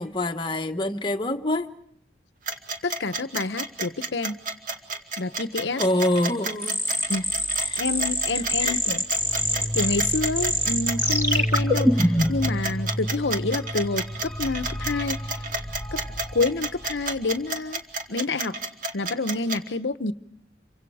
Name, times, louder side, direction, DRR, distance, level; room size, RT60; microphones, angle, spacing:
voice 1, 0.0-1.7 5.8-6.8 7.0-7.1 7.6-7.8 8.3-8.8, left 1 dB, 25° left, 1.2 m, -26 dB
sound 1, 2.5-19.6, right 3 dB, 45° right, 2.2 m, -30 dB
voice 2, 2.8-4.4 5.2-5.8 7.1-7.3 7.8-9.0 9.7-15.2 15.9-16.0 16.3-17.8 18.1-18.5 18.9-20.1, left 3 dB, 75° left, 0.9 m, -28 dB
sound 2, 6.6-12.5, equal, 15° right, 2.4 m, -24 dB
sound 3, 9.1-17.4, equal, 5° left, 3.1 m, -31 dB
29.0 x 25.0 x 4.8 m
head